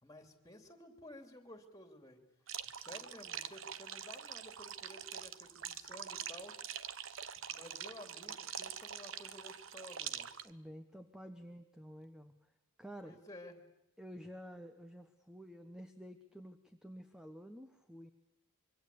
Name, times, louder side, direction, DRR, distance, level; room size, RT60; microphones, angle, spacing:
voice 1, 0.0-2.2 2.7-6.6 7.5-10.3 13.0-13.6, left 1 dB, 15° left, 7 dB, 2.9 m, -54 dB
sound 1, 2.5-10.5, right 9 dB, 60° right, 1.0 m, -45 dB
voice 2, 10.4-12.3 12.8-13.2 14.0-18.1, equal, 5° right, 8 dB, 1.1 m, -51 dB
26.0 x 24.0 x 8.6 m, 0.81 s
head